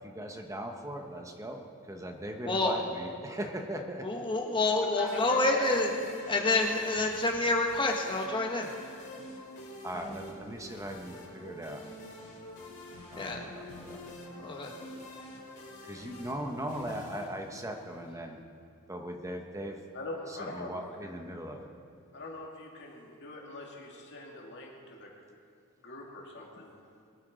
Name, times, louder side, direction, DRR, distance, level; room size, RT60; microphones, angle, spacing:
voice 1, 0.0-4.0 9.8-11.8 13.1-14.0 15.8-18.4 18.9-19.8 20.3-21.7, right 1 dB, 15° right, 4 dB, 0.9 m, -39 dB
voice 2, 2.4-2.8 4.0-5.9 6.3-8.7 13.1-13.4 14.4-14.7, left 2 dB, 20° left, 1 dB, 1.4 m, -28 dB
voice 3, 5.0-5.4 6.3-6.4 13.0-13.1 19.9-21.2 22.1-25.1 25.8-26.7, left 1 dB, 55° left, -1 dB, 2.4 m, -43 dB
sound 1, 5.1-18.1, left 1 dB, 40° left, 3.4 m, -47 dB
21.0 x 8.4 x 5.1 m, 2.3 s
head